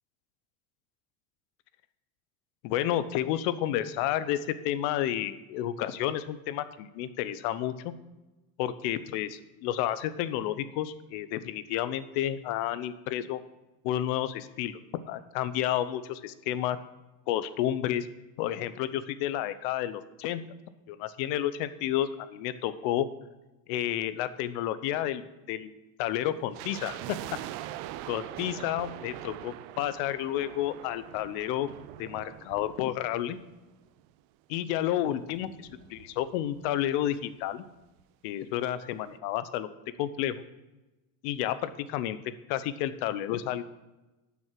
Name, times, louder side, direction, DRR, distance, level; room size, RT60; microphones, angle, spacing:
voice 1, 2.6-7.9 8.6-13.4 13.8-14.8 15.1-16.8 17.3-18.1 18.4-20.4 20.9-23.1 23.7-25.2 25.5-25.7 26.0-27.2 28.1-31.7 32.0-33.4 34.5-35.5 35.9-37.6 38.2-39.7 40.0-40.4 41.2-42.2 42.5-43.6, left 12 dB, 85° left, 14 dB, 0.9 m, -31 dB
sound 1, 26.5-33.8 34.1-34.2 34.8-36.7 36.9-37.0 37.2-37.5 38.0-38.1, right 14 dB, 75° right, 0.7 m, -43 dB
11.0 x 6.1 x 5.9 m, 1.1 s
cardioid pair, 160°, 46 cm